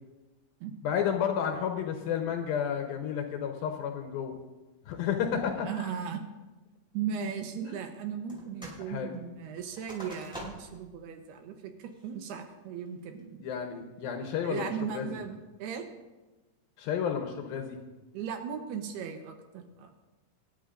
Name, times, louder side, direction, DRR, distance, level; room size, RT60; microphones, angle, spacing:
voice 1, 0.8-4.4 4.9-5.9 8.9-9.1 13.4-15.2 16.8-17.8, left 8 dB, 75° left, 4 dB, 2.3 m, -31 dB
voice 2, 5.5-6.2 6.9-13.5 14.4-15.9 18.1-19.9, right 7 dB, 75° right, 6 dB, 2.8 m, -37 dB
sound 1, 8.3-8.9 9.1-10.8 11.3-11.4 11.9-12.3 12.8-13.2, equal, ahead, 5.1 m, -45 dB
25.0 x 11.0 x 2.5 m, 1.2 s
omnidirectional pair, 4.9 m